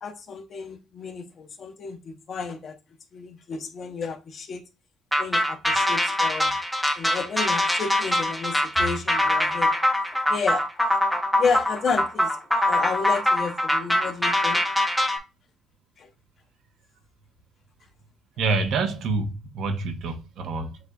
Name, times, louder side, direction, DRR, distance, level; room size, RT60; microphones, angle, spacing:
voice 1, 0.0-2.8 3.1-4.6 5.2-6.5 6.9-9.8 10.3-11.0 11.4-14.6 16.0-16.1, left 5 dB, 50° left, 0.9 m, -31 dB
sound 1, 5.1-15.2, left 1 dB, 5° left, 0.8 m, -23 dB
voice 2, 18.4-20.8, right 3 dB, 70° right, 0.9 m, -27 dB
7.9 x 2.6 x 2.3 m
cardioid pair, 110°, 0 cm